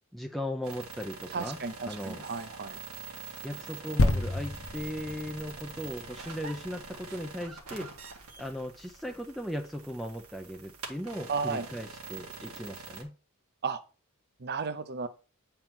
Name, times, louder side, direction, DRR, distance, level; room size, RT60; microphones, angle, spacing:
voice 1, 0.1-1.6 1.8-2.2 3.4-7.9 8.4-13.1, equal, ahead, 3 dB, 0.5 m, -37 dB
sound 1, 0.6-13.0, right 4 dB, 85° right, 1.9 m, -45 dB
voice 2, 1.3-2.8 11.3-11.7 13.6-13.8 14.4-15.1, right 5 dB, 50° right, 10 dB, 0.7 m, -33 dB
sound 2, 4.0-7.6 8.2-8.3, left 1 dB, 65° left, 1.0 m, -30 dB
9.0 x 4.5 x 3.7 m, 0.35 s
head